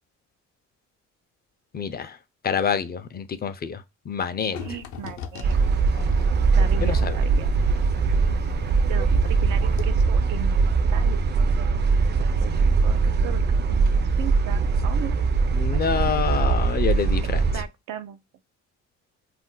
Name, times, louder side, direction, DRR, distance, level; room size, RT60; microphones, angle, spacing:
voice 1, 1.7-2.2 2.4-4.6 6.8-7.2 15.5-17.5, left 7 dB, 30° left, 0.4 m, -27 dB
sound 1, 4.5-9.4 9.7-9.8, left 6 dB, 75° left, 0.6 m, -40 dB
voice 2, 4.5-5.6 6.6-7.5 8.9-10.6 10.9-11.2 12.4-12.5 12.8-15.2 15.7-16.2 17.5-18.2, right 9 dB, 90° right, 0.5 m, -37 dB
sound 2, 5.4-17.6, right 4 dB, 35° right, 0.4 m, -21 dB
2.4 x 2.1 x 3.7 m
cardioid pair, 90°, 30 cm